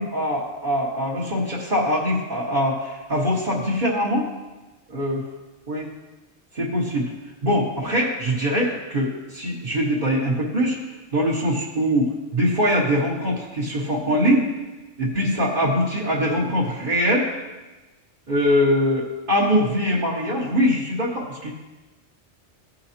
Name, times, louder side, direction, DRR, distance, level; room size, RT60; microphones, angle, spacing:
voice 1, 0.0-4.3 4.9-5.2 5.7-5.9 6.5-7.1 7.4-10.8 11.1-14.5 15.0-17.3 18.3-21.5, equal, 40° right, -6 dB, 1.7 m, -22 dB
16.0 x 5.6 x 2.9 m, 1.1 s
omnidirectional pair, 1.2 m